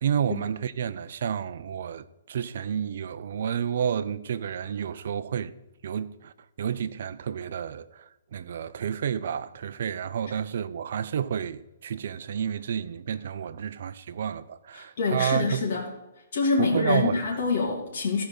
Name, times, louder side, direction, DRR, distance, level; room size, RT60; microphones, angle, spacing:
voice 1, 0.0-5.5 5.8-6.3 6.6-15.6 16.6-17.3, right 8 dB, 55° right, 0.5 m, -30 dB
voice 2, 14.7-15.8 16.3-18.2, left 4 dB, 55° left, 2.8 m, -26 dB
14.5 x 5.1 x 6.5 m
hypercardioid pair, 170°, 0 cm